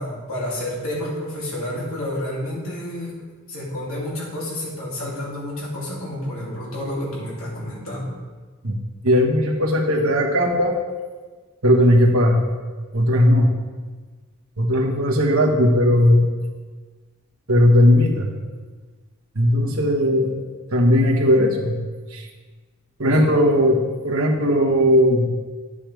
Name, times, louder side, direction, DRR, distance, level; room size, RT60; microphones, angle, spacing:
voice 1, 0.0-3.1 3.5-8.1 23.1-23.2, left 1 dB, 80° left, -6 dB, 2.9 m, -29 dB
voice 2, 9.0-10.7 11.6-12.4 12.9-13.5 14.6-16.3 17.5-18.3 19.3-20.4 20.7-21.8 22.1-22.2 23.0-23.8 24.0-25.3, equal, 85° right, -1 dB, 1.4 m, -17 dB
10.5 x 7.0 x 3.4 m, 1.4 s
head